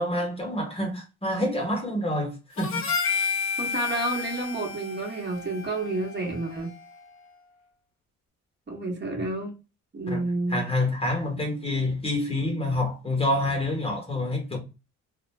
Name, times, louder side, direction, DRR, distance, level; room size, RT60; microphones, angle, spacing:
voice 1, 0.0-2.8 10.1-10.2 10.5-14.6, left 1 dB, 20° left, 0.9 m, -27 dB
Harmonica, 2.6-7.0, left 5 dB, 45° left, 0.7 m, -31 dB
voice 2, 3.6-6.7 8.7-9.5 9.9-10.7, right 2 dB, 35° right, 1.1 m, -30 dB
2.4 x 2.2 x 3.1 m
cardioid pair, 90°, 30 cm